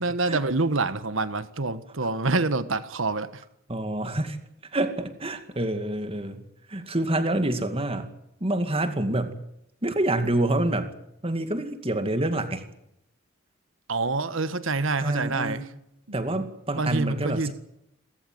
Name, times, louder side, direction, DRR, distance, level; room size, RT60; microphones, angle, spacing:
voice 1, 0.0-3.4 13.9-15.6 16.1-16.2 16.7-17.5, right 3 dB, 65° right, 13 dB, 1.3 m, -26 dB
voice 2, 3.7-4.4 4.7-6.4 6.7-8.1 8.4-9.3 9.8-10.9 11.2-12.6 15.0-15.7 16.1-17.5, right 1 dB, 25° right, 8 dB, 2.3 m, -27 dB
29.0 x 14.0 x 9.4 m, 0.81 s
head